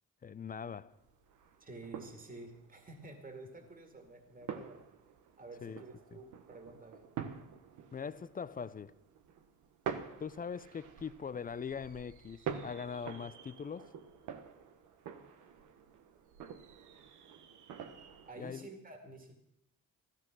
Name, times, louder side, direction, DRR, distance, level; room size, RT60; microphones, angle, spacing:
voice 1, 0.2-0.9 5.6-5.8 6.1-6.2 7.9-8.9 10.2-13.9 18.4-18.7, left 6 dB, 30° left, 0.5 m, -42 dB
sound 1, 0.9-18.3, right 7 dB, 75° right, 1.2 m, -47 dB
voice 2, 1.6-4.8 5.4-7.1 18.3-19.4, right 2 dB, 30° right, 2.2 m, -50 dB
13.5 x 13.0 x 6.1 m
cardioid pair, 90°, 30 cm